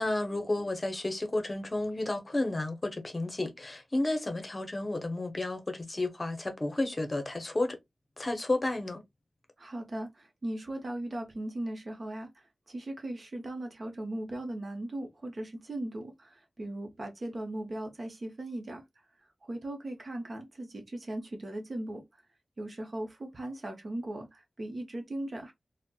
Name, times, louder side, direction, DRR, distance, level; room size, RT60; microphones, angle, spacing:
voice 1, 0.0-7.8 8.2-9.0, left 2 dB, 30° left, 0.8 m, -32 dB
voice 2, 9.6-12.3 12.7-18.8 19.4-22.2 22.6-25.5, right 1 dB, 50° right, 0.8 m, -38 dB
4.1 x 2.1 x 2.3 m
wide cardioid pair, 100°, 0 cm